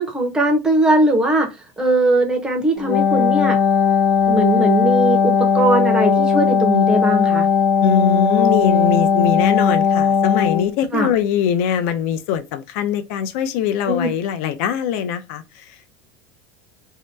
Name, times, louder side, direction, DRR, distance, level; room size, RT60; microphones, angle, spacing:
voice 1, 0.0-1.5 1.8-3.6 4.3-7.5 10.9-11.1 13.9-14.1, right 2 dB, 10° right, 0.7 m, -19 dB
Wind instrument woodwind instrument, 2.8-10.7, left 6 dB, 85° left, 1.0 m, -17 dB
voice 2, 7.8-15.9, left 8 dB, 60° left, 0.5 m, -22 dB
2.7 x 2.1 x 3.2 m
supercardioid pair, 160°, 8 cm